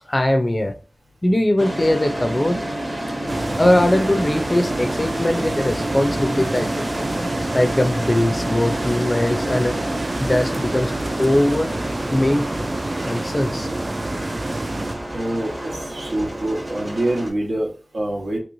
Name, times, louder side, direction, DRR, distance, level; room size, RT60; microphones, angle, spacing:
voice 1, 0.1-0.8 1.2-2.6 3.6-7.1 7.5-9.8 10.2-11.7 12.1-12.7 13.0-13.7, left 1 dB, 25° left, 0.4 m, -20 dB
sound 1, 1.6-17.3, right 1 dB, 25° right, 0.8 m, -29 dB
sound 2, 3.3-15.0, right 2 dB, 45° right, 0.3 m, -28 dB
voice 2, 15.1-18.4, right 1 dB, 80° right, 1.0 m, -25 dB
2.9 x 2.9 x 2.6 m
wide cardioid pair, 65°, 0 cm